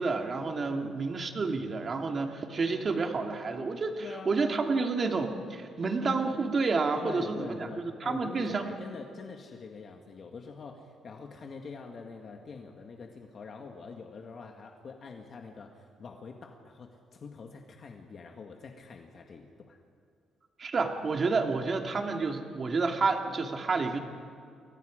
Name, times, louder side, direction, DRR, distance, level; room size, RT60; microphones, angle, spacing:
voice 1, 0.0-7.7 8.0-8.7 20.6-24.0, right 4 dB, 35° right, 3 dB, 2.2 m, -29 dB
voice 2, 0.7-1.0 4.0-4.3 7.0-19.8, left 4 dB, 45° left, 2 dB, 1.8 m, -45 dB
29.5 x 22.5 x 5.1 m, 2.3 s
cardioid pair, 135°, 0 cm